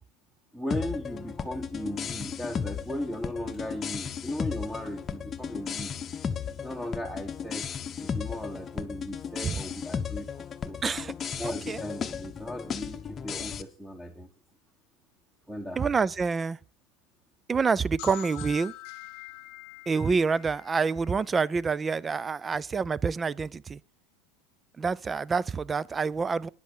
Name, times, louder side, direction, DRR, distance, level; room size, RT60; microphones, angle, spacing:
voice 1, 0.5-6.0 6.6-10.8 11.4-14.3 15.5-15.9, equal, 5° right, 1.3 m, -37 dB
sound 1, 0.7-13.6, left 7 dB, 30° left, 0.8 m, -35 dB
voice 2, 10.8-11.1 11.4-11.8 15.8-16.6 17.5-18.7 19.9-23.8 24.8-26.5, right 5 dB, 20° right, 0.4 m, -27 dB
sound 2, 18.0-21.6, left 19 dB, 60° left, 0.8 m, -45 dB
10.0 x 8.1 x 6.5 m
supercardioid pair, 110°, 0 cm